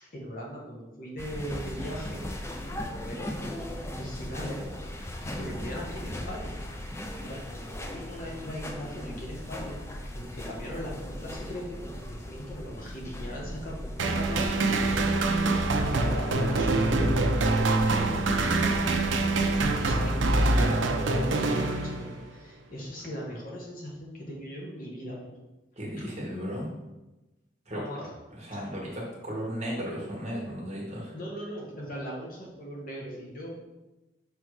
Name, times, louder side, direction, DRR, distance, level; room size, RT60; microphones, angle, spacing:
voice 1, 0.0-2.2 2.9-4.6 5.3-6.6 7.2-9.8 10.1-15.2 15.5-18.2 19.8-25.3 27.7-28.1 28.5-28.7 31.1-33.6, equal, 45° left, -2 dB, 1.3 m, -39 dB
sound 1, 1.2-20.7, left 1 dB, 15° left, 0.4 m, -38 dB
sound 2, 14.0-22.3, right 2 dB, 75° right, 0.6 m, -25 dB
voice 2, 25.8-26.7 27.6-27.8 28.3-31.1, equal, 35° right, -3 dB, 1.5 m, -35 dB
5.7 x 3.6 x 4.7 m, 1.0 s
head